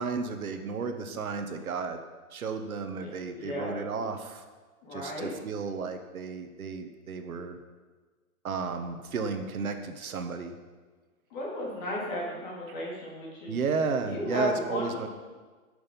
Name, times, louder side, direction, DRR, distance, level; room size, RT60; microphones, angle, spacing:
voice 1, 0.0-2.0 2.3-4.4 4.9-7.6 8.4-10.6 12.7-12.8 13.5-15.1, right 4 dB, 70° right, 7 dB, 1.4 m, -33 dB
voice 2, 3.0-3.8 4.8-5.3 11.3-13.6 14.0-15.1, left 1 dB, 30° left, -4 dB, 3.2 m, -35 dB
13.0 x 6.8 x 5.4 m, 1.4 s
hypercardioid pair, 160°, 44 cm